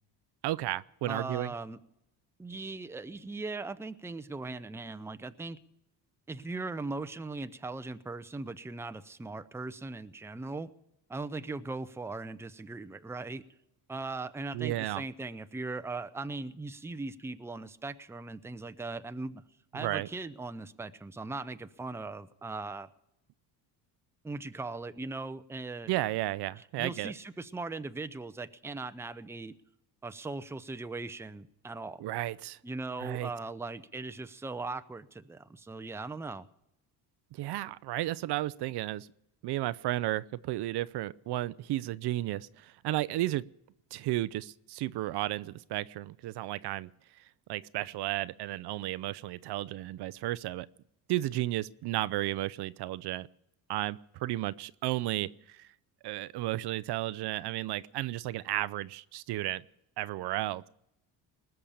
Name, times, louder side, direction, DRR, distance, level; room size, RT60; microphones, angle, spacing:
voice 1, 0.4-1.5 14.5-15.0 19.7-20.1 25.9-27.1 32.0-32.6 33.0-33.3 37.3-39.1 39.4-43.4 43.9-46.9 47.2-47.3 47.5-50.7 51.1-53.3 53.7-55.7 56.0-59.6 60.0-60.7, right 15 dB, 65° right, 17 dB, 0.6 m, -33 dB
voice 2, 1.0-1.8 2.4-5.6 6.3-10.7 11.1-13.4 13.9-19.4 19.7-22.9 24.2-25.9 26.8-29.6 30.0-32.0 32.6-36.5, right 3 dB, 5° right, 11 dB, 0.6 m, -39 dB
20.0 x 6.8 x 8.7 m, 0.82 s
cardioid pair, 100°, 43 cm